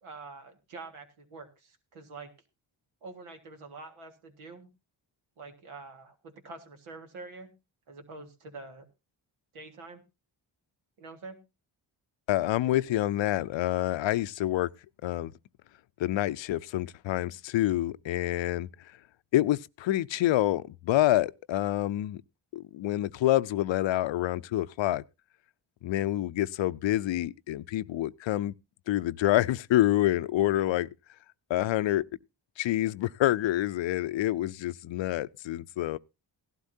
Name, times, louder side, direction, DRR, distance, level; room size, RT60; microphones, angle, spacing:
voice 1, 0.0-2.3 3.0-4.7 5.4-7.5 7.9-8.9 9.5-10.0 11.0-11.4, right 3 dB, 90° right, 1.9 m, -46 dB
voice 2, 12.3-14.7 15.0-15.3 16.0-18.7 19.3-22.2 22.5-25.0 25.8-28.5 28.9-30.9 31.5-32.0 32.6-36.0, left 14 dB, 70° left, 0.6 m, -27 dB
16.5 x 12.0 x 2.7 m
cardioid pair, 55°, 48 cm